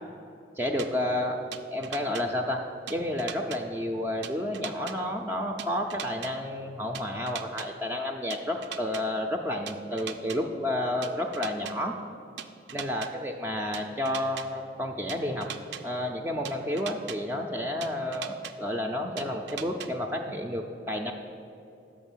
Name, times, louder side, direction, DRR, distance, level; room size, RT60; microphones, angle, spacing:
voice 1, 0.6-1.4 1.7-2.6 2.9-11.9 12.7-15.5 15.8-21.1, left 1 dB, 10° right, 2 dB, 0.4 m, -31 dB
sound 1, 0.8-0.9 1.5-2.2 2.9-3.6 4.2-4.9 5.6-6.3 6.9-7.7 8.3-9.0 9.7-10.4 11.0-11.7 12.4-13.1 13.7-14.4 15.1-15.8 16.4-17.2 17.8-18.5 19.2-19.9, right 9 dB, 70° right, 0.4 m, -38 dB
6.2 x 5.9 x 7.2 m, 2.7 s
head